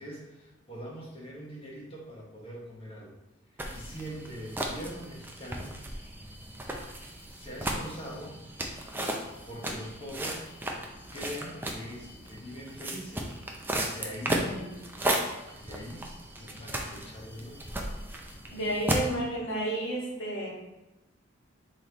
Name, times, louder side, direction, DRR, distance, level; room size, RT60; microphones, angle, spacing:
voice 1, 0.0-3.1 3.7-5.8 7.3-8.4 9.4-10.4 11.1-13.3 13.8-14.5 15.6-16.1 16.4-17.7, equal, 30° left, -4 dB, 1.1 m, -42 dB
sound 1, 3.6-19.1, right 1 dB, 10° right, 0.4 m, -35 dB
voice 2, 14.4-14.7 18.5-20.5, right 1 dB, 70° left, -4 dB, 1.5 m, -31 dB
3.9 x 3.2 x 3.9 m, 1.0 s
head